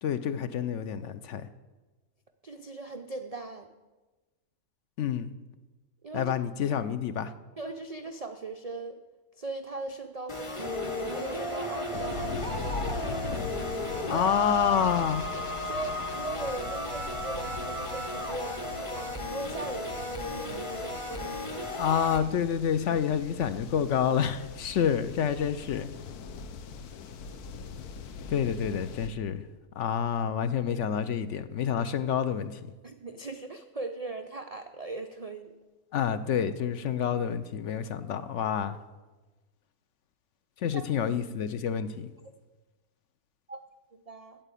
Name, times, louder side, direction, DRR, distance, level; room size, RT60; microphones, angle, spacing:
voice 1, 0.0-1.5 5.0-5.3 6.1-7.3 14.1-15.2 21.7-25.9 28.3-29.4 29.8-32.5 35.9-38.8 40.6-42.1, left 8 dB, 65° left, 0.8 m, -28 dB
voice 2, 2.4-3.7 6.0-6.3 7.6-9.0 9.4-12.9 14.1-14.3 15.3-21.6 32.8-35.6 40.7-40.8 43.5-43.6 43.9-44.4, right 3 dB, 75° right, 0.3 m, -39 dB
sound 1, 10.3-22.2, left 1 dB, 25° left, 1.0 m, -34 dB
sound 2, 11.9-29.1, left 5 dB, 85° left, 1.3 m, -42 dB
9.1 x 8.3 x 8.3 m
omnidirectional pair, 1.6 m